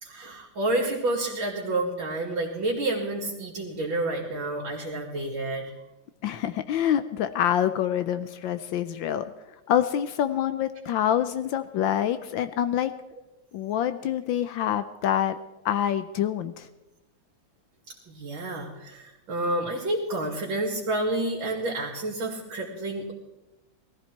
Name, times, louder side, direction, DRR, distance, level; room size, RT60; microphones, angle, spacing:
voice 1, 0.0-5.7 18.1-23.1, right 2 dB, 70° right, -1 dB, 3.0 m, -29 dB
voice 2, 6.2-9.3 9.7-12.9 13.5-15.3 15.6-16.7, left 10 dB, 75° left, 11 dB, 1.4 m, -26 dB
18.5 x 14.5 x 4.5 m, 0.99 s
omnidirectional pair, 2.2 m